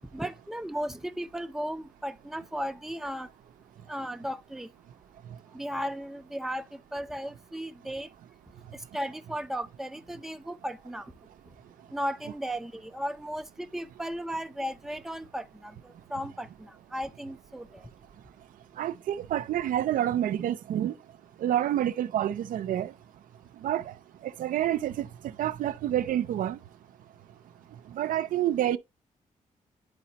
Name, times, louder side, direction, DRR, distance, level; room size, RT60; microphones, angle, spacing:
voice 1, 0.1-3.3 3.9-4.7 5.5-8.1 8.9-11.1 11.9-17.8, equal, 5° right, 0.5 m, -35 dB
voice 2, 18.8-20.9 21.4-22.9 23.6-23.9 24.2-26.6 27.9-28.8, right 11 dB, 85° right, 0.4 m, -28 dB
9.4 x 4.1 x 2.8 m
cardioid pair, 90°, 14 cm